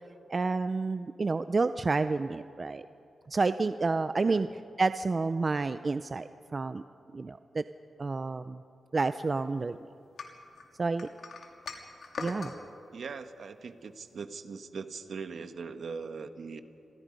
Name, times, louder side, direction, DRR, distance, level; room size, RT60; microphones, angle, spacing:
voice 1, 0.3-2.8 3.3-4.5 4.8-6.8 7.1-7.6 8.0-8.6 8.9-9.8 10.8-11.1 12.2-12.5, right 3 dB, 40° right, 11 dB, 0.5 m, -29 dB
sound 1, 10.2-12.6, left 4 dB, 70° left, 2.7 m, -41 dB
voice 2, 12.9-16.6, right 5 dB, 65° right, 9 dB, 1.3 m, -40 dB
29.5 x 22.5 x 5.3 m, 2.6 s
wide cardioid pair, 105°, 0 cm